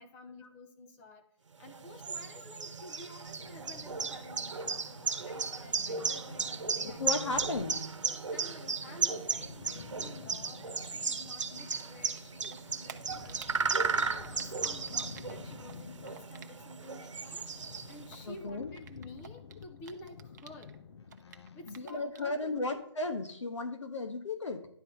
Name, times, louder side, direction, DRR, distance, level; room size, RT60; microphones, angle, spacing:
voice 1, 0.0-1.3 1.6-7.3 8.3-13.4 13.8-17.5 17.9-20.8 21.5-22.7, left 2 dB, 15° left, 6 dB, 0.5 m, -51 dB
sound 1, 1.6-18.2, right 5 dB, 85° right, 1.0 m, -35 dB
sound 2, 3.3-21.8, left 6 dB, 65° left, 0.6 m, -51 dB
voice 2, 6.8-7.8 18.3-18.7 21.7-24.7, left 3 dB, 80° left, 5 dB, 1.1 m, -35 dB
Typing, 10.8-12.2 12.4-16.9 17.2-20.8 21.0-22.4, right 8 dB, 40° right, 0.7 m, -52 dB
10.5 x 3.9 x 4.4 m, 0.71 s
hypercardioid pair, 155°, 15 cm